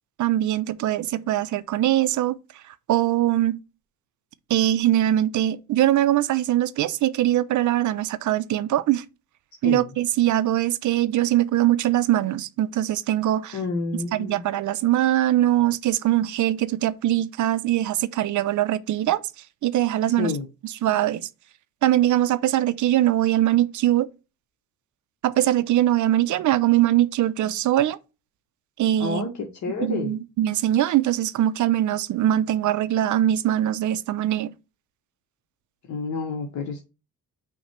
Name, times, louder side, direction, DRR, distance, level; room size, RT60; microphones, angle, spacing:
voice 1, 0.2-3.6 4.5-9.0 9.6-13.6 14.1-19.2 19.6-20.3 20.8-21.3 21.8-24.1 25.2-28.0 28.8-29.3 29.8-34.5, right 13 dB, 60° right, 0.5 m, -22 dB
voice 2, 13.5-14.4 20.1-20.5 29.0-29.3 29.6-30.2 35.9-36.8, left 4 dB, 55° left, 0.9 m, -29 dB
5.8 x 2.2 x 4.2 m
cardioid pair, 85°, 34 cm